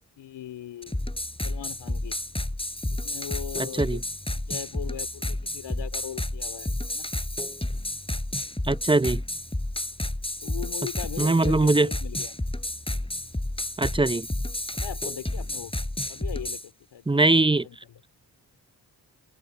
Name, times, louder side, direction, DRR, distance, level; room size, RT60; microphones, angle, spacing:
voice 1, 0.2-2.2 2.8-4.0 4.3-7.1 10.4-12.4 14.8-15.7 16.1-18.0, left 11 dB, 85° left, 3.5 m, -40 dB
sound 1, 0.8-16.7, left 1 dB, 15° left, 5.1 m, -31 dB
voice 2, 8.6-9.2 11.2-11.9 13.8-14.3 17.1-17.7, right 2 dB, 10° right, 0.7 m, -21 dB
supercardioid pair, 45°, 41 cm